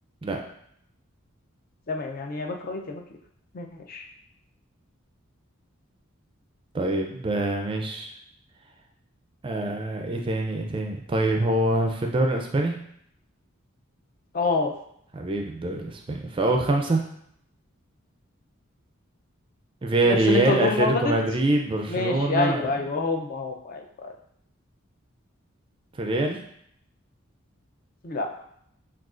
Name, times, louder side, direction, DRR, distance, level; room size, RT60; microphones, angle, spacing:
voice 1, 1.9-3.2 3.5-4.1 14.3-14.7 20.0-20.9 21.9-24.1 28.0-28.3, left 3 dB, 45° left, 3 dB, 0.4 m, -27 dB
voice 2, 6.7-8.1 9.4-12.8 15.1-17.0 19.8-22.7 26.0-26.4, right 2 dB, 25° right, 2 dB, 0.4 m, -24 dB
6.1 x 2.4 x 2.4 m, 0.71 s
head